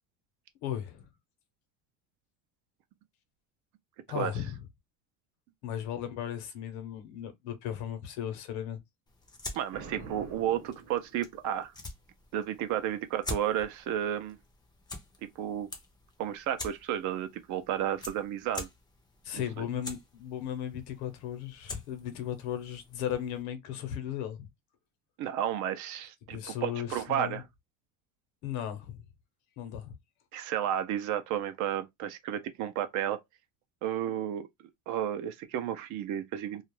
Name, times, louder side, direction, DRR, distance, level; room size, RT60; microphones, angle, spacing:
voice 1, 0.6-1.1 4.1-4.6 5.6-8.8 19.2-24.5 26.3-27.4 28.4-29.0 29.6-29.9, left 10 dB, 70° left, 0.9 m, -36 dB
sound 1, 9.1-23.4, left 2 dB, 10° left, 0.5 m, -46 dB
voice 2, 9.5-11.7 12.3-14.4 15.4-15.7 16.2-18.7 19.3-19.7 25.2-27.4 30.3-33.2 33.8-34.5 34.9-36.6, right 10 dB, 50° right, 0.5 m, -32 dB
Boom, 9.7-11.6, right 4 dB, 35° right, 0.9 m, -45 dB
2.4 x 2.1 x 3.0 m
cardioid pair, 140°, 38 cm